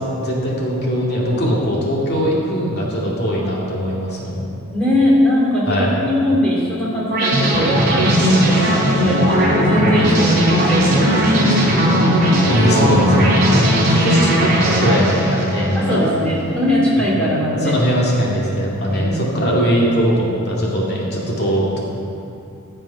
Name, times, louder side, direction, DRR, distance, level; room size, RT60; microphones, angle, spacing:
voice 1, 0.0-4.4 5.7-5.9 12.5-16.0 17.2-17.3 17.6-21.8, equal, 50° left, -4 dB, 2.3 m, -20 dB
voice 2, 4.7-12.0 15.7-17.8 18.9-19.5, equal, 5° left, -6 dB, 2.9 m, -20 dB
sound 1, 7.1-16.2, equal, 45° right, 2.9 m, -16 dB
13.5 x 7.2 x 5.7 m, 2.6 s
head